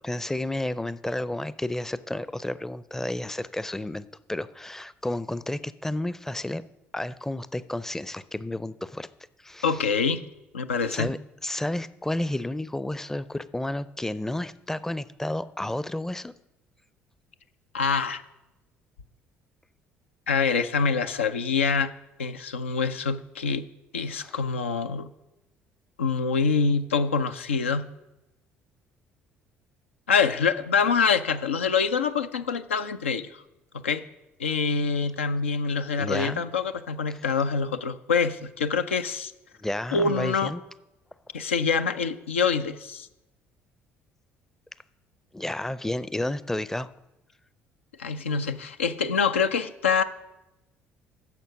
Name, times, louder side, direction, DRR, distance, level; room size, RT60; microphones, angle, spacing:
voice 1, 0.0-6.6 6.9-9.1 9.4-9.8 10.9-16.3 24.2-24.4 36.0-36.4 37.1-37.2 39.6-40.6 45.3-46.9, left 1 dB, 5° left, 16 dB, 0.5 m, -31 dB
voice 2, 9.6-10.2 10.5-11.1 17.7-18.2 20.3-21.9 22.2-23.7 23.9-25.1 26.0-27.9 30.1-33.4 33.7-34.1 34.4-39.3 39.9-40.5 41.3-43.1 48.0-50.0, left 5 dB, 85° left, 9 dB, 0.4 m, -25 dB
10.5 x 6.8 x 6.3 m, 0.94 s
hypercardioid pair, 55°, 6 cm